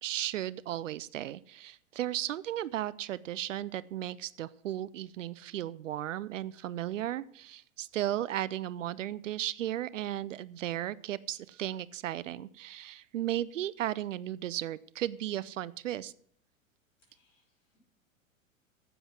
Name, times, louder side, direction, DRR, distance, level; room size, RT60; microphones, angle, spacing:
voice 1, 0.0-16.1, right 12 dB, 65° right, 19 dB, 0.6 m, -35 dB
voice 2, 17.0-17.8, left 3 dB, 60° left, -1 dB, 5.8 m, -73 dB
10.0 x 8.0 x 6.1 m, 0.63 s
figure-of-eight pair, 95°, 41 cm